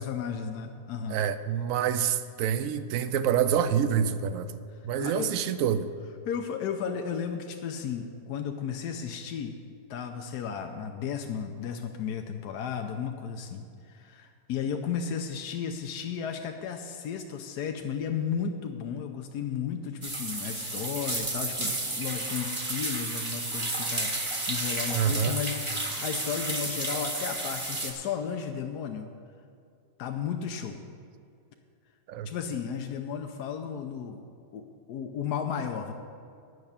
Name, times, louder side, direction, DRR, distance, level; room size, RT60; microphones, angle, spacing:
voice 1, 0.0-1.2 4.7-5.5 6.2-9.5 9.9-29.1 30.0-30.8 32.2-34.2 34.5-35.9, left 7 dB, 90° left, 5 dB, 1.2 m, -34 dB
voice 2, 1.1-4.5 4.8-5.9 24.9-25.4 32.1-32.3, right 8 dB, 70° right, 12 dB, 0.9 m, -27 dB
sound 1, 20.0-27.9, right 2 dB, 20° right, 1.0 m, -32 dB
9.5 x 6.7 x 8.7 m, 2.4 s
omnidirectional pair, 1.7 m